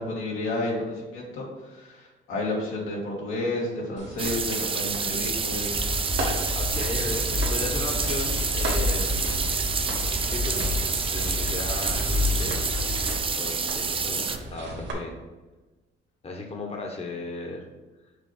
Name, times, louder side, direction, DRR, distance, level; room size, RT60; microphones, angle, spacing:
voice 1, 0.0-5.8, left 2 dB, 90° left, -4 dB, 2.2 m, -31 dB
sound 1, 4.0-14.9, right 2 dB, 70° right, 1.6 m, -37 dB
sound 2, 4.2-14.4, right 5 dB, 25° right, 0.5 m, -29 dB
sound 3, 5.7-13.1, left 2 dB, 10° right, 0.9 m, -29 dB
voice 2, 6.5-9.6 9.9-10.6 11.0-13.0 13.3-15.2 16.2-17.6, left 2 dB, 30° left, 1 dB, 1.1 m, -36 dB
6.6 x 3.1 x 5.7 m, 1.2 s
cardioid pair, 90°, 20 cm